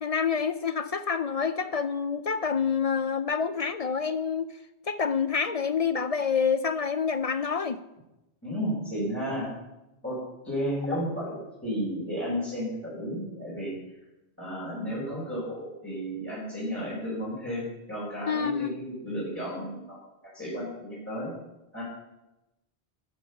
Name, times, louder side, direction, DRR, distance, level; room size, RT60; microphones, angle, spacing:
voice 1, 0.0-4.5 4.9-7.8 10.9-11.0 18.3-18.7, left 6 dB, 50° left, 12 dB, 0.4 m, -27 dB
voice 2, 8.4-9.5 10.0-10.2 10.4-11.4 11.6-13.7 14.4-20.0 20.3-21.3 21.7-21.8, equal, 10° left, -9 dB, 4.7 m, -33 dB
12.5 x 7.3 x 6.7 m, 0.96 s
omnidirectional pair, 1.1 m